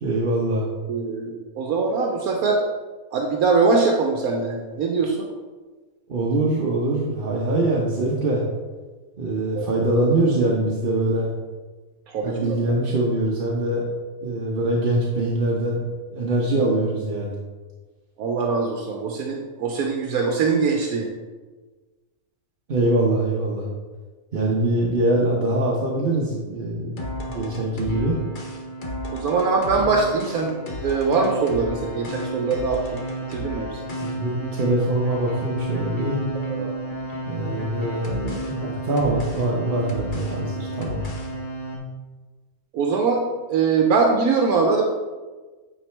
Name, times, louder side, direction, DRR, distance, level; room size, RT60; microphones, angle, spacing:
voice 1, 0.0-0.7 6.1-8.4 9.2-11.3 12.2-13.8 14.2-15.8 16.1-17.4 22.7-23.7 24.3-28.2 34.0-36.2 37.3-41.0, right 2 dB, 45° right, -3 dB, 0.9 m, -23 dB
voice 2, 0.9-2.6 3.1-5.3 7.3-7.4 9.5-9.6 12.1-12.7 18.2-21.1 27.3-27.5 29.1-30.5 30.8-33.0 33.3-33.8 36.5-36.7 42.7-43.2 43.5-44.8, right 4 dB, 75° right, 1 dB, 1.2 m, -22 dB
sound 1, 27.0-41.8, right 1 dB, 40° left, 1.0 m, -32 dB
8.8 x 4.7 x 3.3 m, 1.3 s
omnidirectional pair, 1.6 m